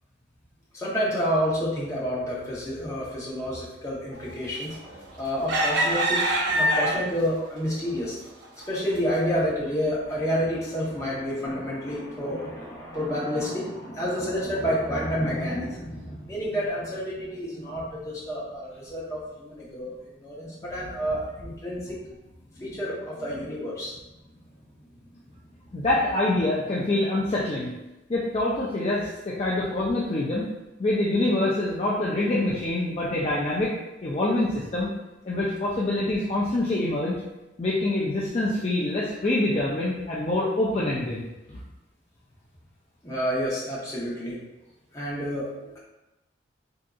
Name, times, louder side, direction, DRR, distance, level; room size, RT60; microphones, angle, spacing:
voice 1, 0.7-4.7 5.2-8.2 8.7-19.9 20.2-22.0 22.5-24.0 25.3-25.4 32.2-32.3 32.8-33.0 43.0-44.4 44.9-45.8, equal, 15° left, -7 dB, 0.8 m, -29 dB
sound 1, 4.7-5.0 5.5-7.3 7.9-8.0 8.4-8.6, right 1 dB, 75° right, 0.5 m, -24 dB
voice 2, 25.7-27.7 28.1-30.5 30.8-33.7 34.0-34.9 35.2-37.1 37.6-41.6, left 2 dB, 35° left, -6 dB, 0.4 m, -25 dB
3.6 x 2.7 x 2.3 m, 1.0 s
head